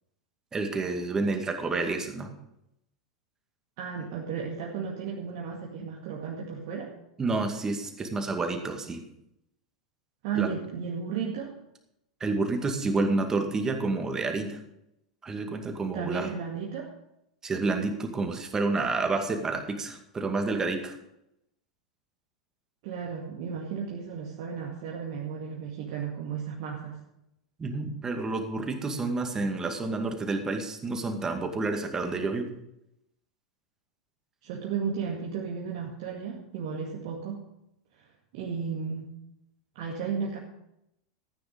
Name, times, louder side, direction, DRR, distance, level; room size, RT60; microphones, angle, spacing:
voice 1, 0.5-2.3 7.2-9.0 10.4-10.5 12.2-14.6 15.2-16.3 17.4-21.0 27.6-32.5, right 3 dB, 20° right, 4 dB, 2.2 m, -29 dB
voice 2, 3.8-6.9 10.2-11.6 15.9-16.9 22.8-27.0 34.4-37.4 38.3-39.1 39.8-40.4, right 6 dB, 50° right, -2 dB, 2.2 m, -34 dB
14.0 x 9.4 x 5.3 m, 0.82 s
figure-of-eight pair, 90°, 3 cm